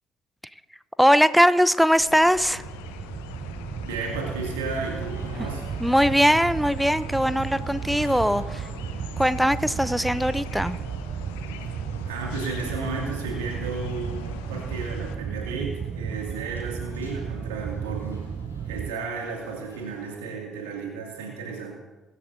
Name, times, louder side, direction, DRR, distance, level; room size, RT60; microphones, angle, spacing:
voice 1, 1.0-2.6 5.8-8.7 9.2-10.8, equal, ahead, 16 dB, 0.6 m, -20 dB
sound 1, 2.0-15.2, left 7 dB, 75° left, 0.8 m, -43 dB
sound 2, 2.3-18.9, right 7 dB, 45° right, 0.5 m, -34 dB
voice 2, 3.8-5.7 12.1-18.3 18.7-21.8, right 4 dB, 75° right, 0 dB, 2.3 m, -33 dB
sound 3, 4.7-20.2, left 2 dB, 90° left, 1.7 m, -48 dB
22.5 x 11.0 x 2.7 m, 1.2 s
figure-of-eight pair, 50°, 0 cm